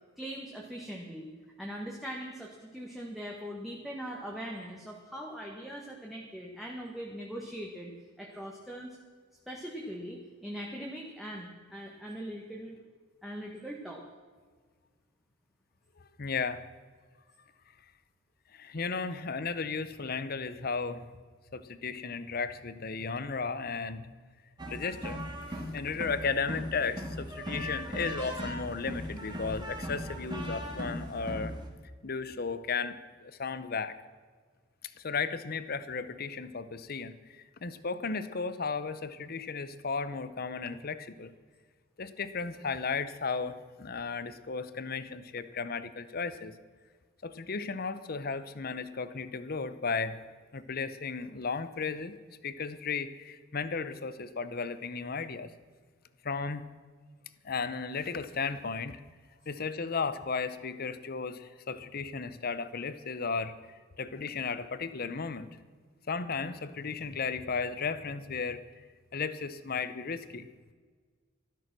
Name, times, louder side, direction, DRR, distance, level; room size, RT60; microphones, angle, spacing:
voice 1, 0.2-1.3 1.6-7.9 8.2-9.0 9.5-12.8 13.2-14.0, equal, ahead, -3 dB, 1.5 m, -41 dB
voice 2, 16.0-16.6 18.5-21.0 21.5-24.1 24.7-25.2 25.5-31.5 32.0-33.9 35.0-41.3 42.0-46.5 47.2-50.2 50.5-52.2 52.4-55.5 56.2-56.7 57.4-59.0 59.5-63.6 64.0-65.5 66.1-68.6 69.1-70.5, left 5 dB, 50° left, 13 dB, 0.8 m, -35 dB
sound 1, 24.6-31.7, equal, 25° right, 2.0 m, -38 dB
13.0 x 12.5 x 6.1 m, 1.5 s
head